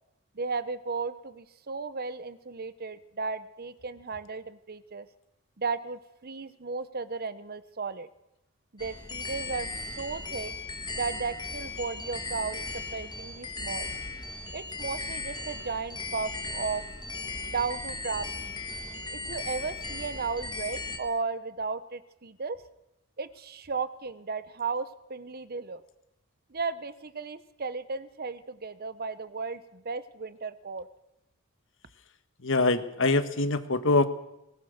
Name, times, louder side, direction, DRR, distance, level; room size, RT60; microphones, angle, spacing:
voice 1, 0.3-5.1 5.6-8.1 8.7-9.7 10.0-10.5 10.9-13.9 14.5-16.8 17.5-18.6 19.1-22.6 23.2-25.8 26.5-30.9, right 4 dB, 45° right, 14 dB, 1.0 m, -35 dB
sound 1, 8.8-21.0, left 3 dB, 20° left, 2.3 m, -37 dB
voice 2, 32.4-34.1, left 3 dB, 65° left, 10 dB, 1.6 m, -24 dB
23.0 x 19.5 x 6.6 m, 0.89 s
head